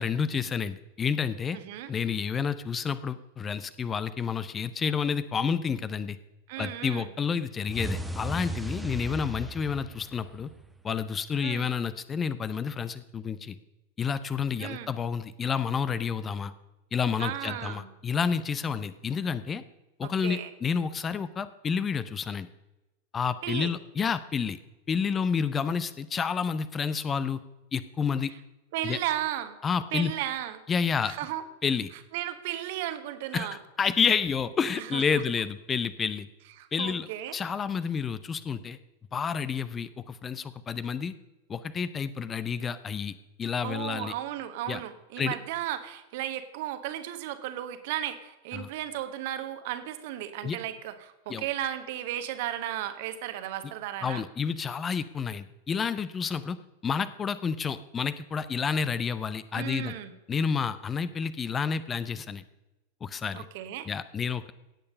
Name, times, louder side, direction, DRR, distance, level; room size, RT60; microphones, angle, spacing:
voice 1, 0.0-1.6 1.9-6.2 6.6-10.5 10.8-13.6 14.0-16.5 16.9-19.6 20.0-22.5 23.1-24.6 24.9-27.4 27.7-28.3 28.8-29.0 29.6-30.1 30.7-31.1 31.6-31.9 33.3-33.5 33.8-36.3 36.7-37.1 37.3-38.8 39.1-41.2 41.5-44.1 44.7-44.8 45.2-45.4 48.5-48.7 50.4-50.6 51.3-51.4 54.0-59.9 60.3-62.4 63.0-63.4 63.9-64.5, left 6 dB, 20° left, 15 dB, 0.7 m, -29 dB
voice 2, 1.5-1.9 6.5-7.1 11.4-11.7 14.6-14.9 17.2-17.9 20.0-20.5 23.4-23.7 28.7-29.6 29.9-30.6 31.0-31.4 32.1-33.6 34.7-35.0 36.6-37.4 43.6-54.2 59.5-60.1 63.3-63.9, right 12 dB, 50° right, 10 dB, 1.4 m, -35 dB
sound 1, 7.7-10.8, right 1 dB, 5° right, 1.1 m, -36 dB
17.0 x 8.7 x 5.4 m, 1.0 s
figure-of-eight pair, 90°, 0 cm